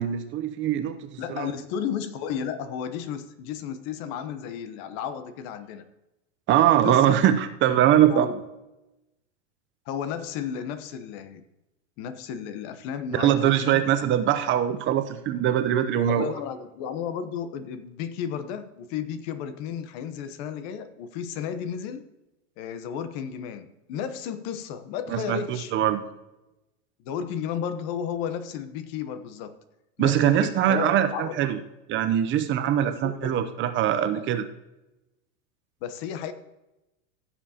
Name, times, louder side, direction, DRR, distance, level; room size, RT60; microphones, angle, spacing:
voice 1, 0.0-1.5 6.5-8.3 13.1-16.3 25.1-26.0 30.0-31.6 31.9-34.4, right 11 dB, 30° right, 10 dB, 0.7 m, -22 dB
voice 2, 1.2-5.9 6.7-7.2 8.1-8.4 9.9-11.4 12.0-13.8 16.1-22.1 22.6-25.7 27.0-29.5 30.0-31.5 32.8-33.4 33.9-34.3 35.8-36.3, left 8 dB, 50° left, 11 dB, 1.0 m, -33 dB
15.5 x 7.1 x 2.9 m, 0.96 s
supercardioid pair, 130°, 38 cm